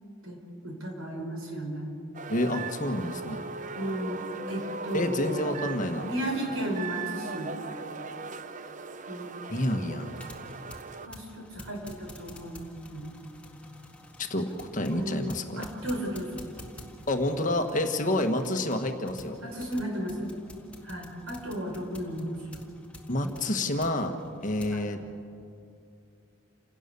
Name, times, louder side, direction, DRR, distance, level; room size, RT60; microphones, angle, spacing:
voice 1, 0.2-1.9 3.7-4.2 4.5-5.5 6.0-7.6 9.1-9.5 11.0-13.2 14.9-15.3 15.6-16.4 19.4-20.3 20.8-22.6 23.2-23.3 24.7-24.8, equal, 90° right, 2 dB, 4.9 m, -34 dB
sound 1, 2.1-11.1, right 4 dB, 35° right, 0.7 m, -39 dB
voice 2, 2.3-3.4 4.9-6.1 9.5-10.1 14.2-15.6 17.1-19.4 23.1-24.2 24.4-25.0, left 1 dB, 35° left, 5 dB, 1.5 m, -28 dB
sound 2, 10.1-24.8, left 1 dB, 5° left, 1.8 m, -50 dB
29.0 x 17.5 x 6.9 m, 2.5 s
head